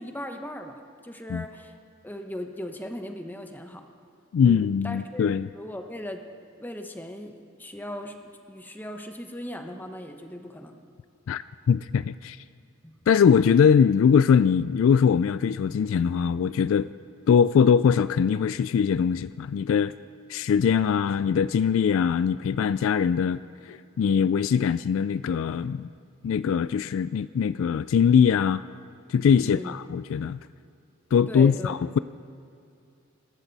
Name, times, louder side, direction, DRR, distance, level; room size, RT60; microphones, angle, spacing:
voice 1, 0.0-1.8 2.0-3.8 4.4-6.2 6.6-8.2 8.5-10.8 12.8-13.1 29.3-29.8 31.3-31.8, left 1 dB, 10° left, 5 dB, 1.0 m, -38 dB
voice 2, 4.3-5.5 11.3-12.4 13.1-16.9 17.3-19.9 20.3-25.9 26.2-28.6 29.1-30.4 31.1-32.0, left 7 dB, 65° left, 16 dB, 0.3 m, -22 dB
25.0 x 13.5 x 4.1 m, 2.5 s
head